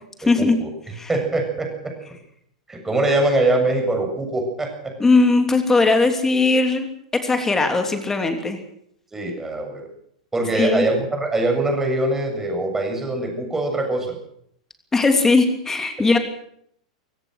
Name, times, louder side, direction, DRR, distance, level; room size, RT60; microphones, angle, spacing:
voice 1, 0.2-0.7 1.1-1.9 2.7-4.9 9.1-9.8 10.3-14.2, right 2 dB, 10° right, 3 dB, 7.4 m, -23 dB
voice 2, 5.0-6.9 7.2-8.6 10.5-10.9 14.9-16.2, left 3 dB, 10° left, 6 dB, 3.1 m, -18 dB
25.0 x 16.5 x 6.6 m, 0.69 s
figure-of-eight pair, 95°, 3 cm